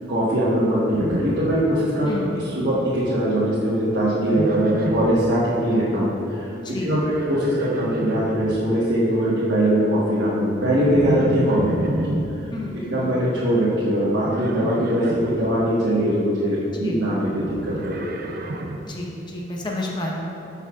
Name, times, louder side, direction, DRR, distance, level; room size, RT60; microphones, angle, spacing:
voice 1, 0.1-2.1 2.5-12.2 12.8-18.1, equal, 75° right, -9 dB, 1.2 m, -21 dB
Livestock farm animals working animals, 0.9-2.2 2.4-3.0 4.3-5.3 6.8-8.6 10.9-12.3 14.2-15.4 17.2-18.9, right 1 dB, 55° right, 0.5 m, -30 dB
voice 2, 2.1-2.5 2.7-2.9 6.6-7.0 12.5-13.5 16.7-17.1 18.8-20.1, left 1 dB, 25° left, -2 dB, 0.9 m, -31 dB
11.5 x 5.5 x 2.4 m, 2.8 s
head